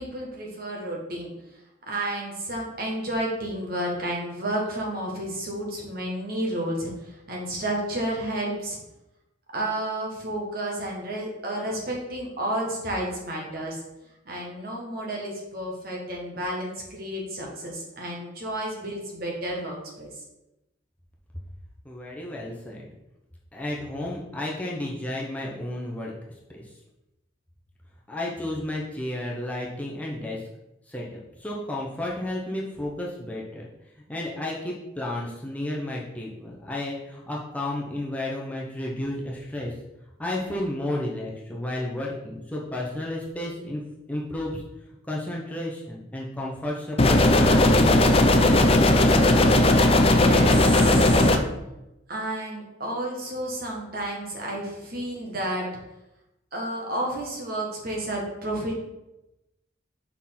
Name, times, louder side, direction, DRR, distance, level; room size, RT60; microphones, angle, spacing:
voice 1, 0.0-1.3 1.9-8.8 9.5-13.8 14.3-20.1 49.9-51.3 52.1-55.7 56.5-58.7, right 1 dB, 50° right, -1 dB, 1.8 m, -31 dB
voice 2, 21.8-22.9 23.5-26.1 26.5-26.6 28.1-30.4 30.9-31.0 31.4-33.7 34.1-39.7 40.2-43.8 44.1-44.6 45.1-48.2, left 1 dB, 5° left, -4 dB, 0.9 m, -32 dB
sound 1, 47.0-51.4, left 1 dB, 30° left, 0.5 m, -17 dB
5.6 x 4.5 x 5.9 m, 0.93 s
head